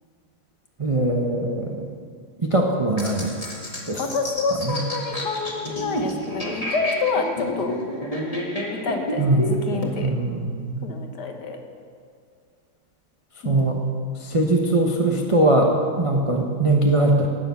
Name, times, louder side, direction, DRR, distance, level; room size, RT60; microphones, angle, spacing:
voice 1, 0.8-1.9 2.4-3.3 3.9-4.0 4.7-4.8 9.2-10.9 13.4-13.8 14.2-17.3, right 2 dB, 35° right, 0 dB, 0.5 m, -21 dB
sound 1, 3.0-9.9, equal, 20° left, 1.7 m, -30 dB
voice 2, 4.0-7.8 8.7-10.1 10.8-11.6 13.4-13.8, left 4 dB, 55° left, 4 dB, 1.7 m, -28 dB
18.5 x 7.0 x 7.1 m, 2.2 s
omnidirectional pair, 2.4 m